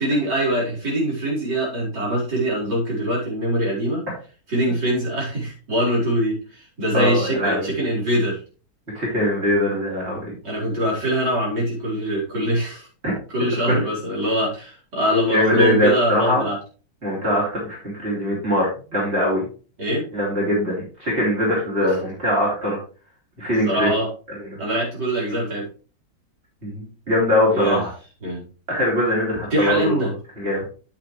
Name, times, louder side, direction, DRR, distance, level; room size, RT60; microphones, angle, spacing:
voice 1, 0.0-4.0 4.5-8.4 10.4-12.9 13.3-16.6 19.8-20.1 23.7-24.1 24.6-25.7 27.5-27.8 28.2-28.4 29.5-30.1, equal, 70° right, -6 dB, 5.2 m, -23 dB
voice 2, 6.9-7.7 8.9-10.3 13.0-13.1 13.6-13.8 15.3-16.4 17.0-19.5 20.1-22.8 23.4-23.9 24.3-24.6 26.6-27.9 28.7-30.7, left 1 dB, 35° right, -5 dB, 4.2 m, -22 dB
9.3 x 8.6 x 3.3 m, 0.37 s
omnidirectional pair, 1.9 m